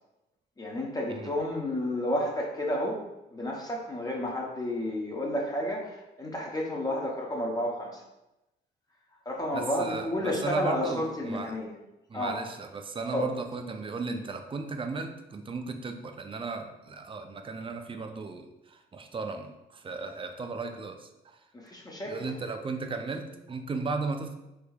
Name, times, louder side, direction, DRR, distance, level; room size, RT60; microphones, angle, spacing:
voice 1, 0.6-3.0 3.3-8.0 9.3-11.7 12.1-12.4 13.1-13.3 21.5-22.3, left 1 dB, 20° left, -2 dB, 0.6 m, -31 dB
voice 2, 9.5-11.5 12.1-21.4 22.1-24.3, right 4 dB, 25° right, 6 dB, 0.4 m, -35 dB
3.3 x 3.3 x 2.3 m, 0.94 s
cardioid pair, 90°, 20 cm